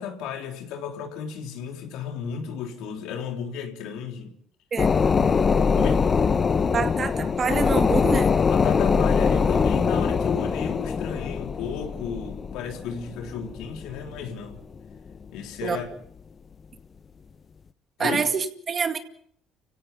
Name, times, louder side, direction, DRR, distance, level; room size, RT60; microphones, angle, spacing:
voice 1, 0.0-4.3 5.8-6.1 8.5-14.6 15.3-15.9 18.0-18.2, left 7 dB, 80° left, 3.6 m, -33 dB
sound 1, 4.8-14.8 15.2-15.3, left 5 dB, 35° left, 0.9 m, -23 dB
voice 2, 6.7-8.3 15.6-15.8 18.0-19.0, right 5 dB, 40° right, 2.1 m, -26 dB
30.0 x 16.5 x 5.4 m
supercardioid pair, 90°, 0 cm